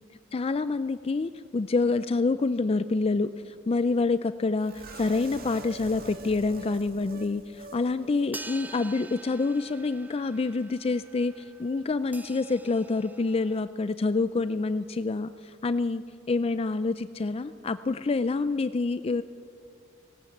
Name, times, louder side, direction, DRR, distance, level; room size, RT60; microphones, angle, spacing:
voice 1, 0.3-16.0 16.3-19.2, left 3 dB, 30° left, 13 dB, 0.4 m, -27 dB
sound 1, 4.6-7.8 8.1-8.2 8.6-8.7, right 3 dB, 50° right, 2.2 m, -44 dB
sound 2, 8.3-13.6, right 2 dB, 10° right, 0.8 m, -46 dB
18.5 x 18.0 x 8.5 m, 2.3 s
head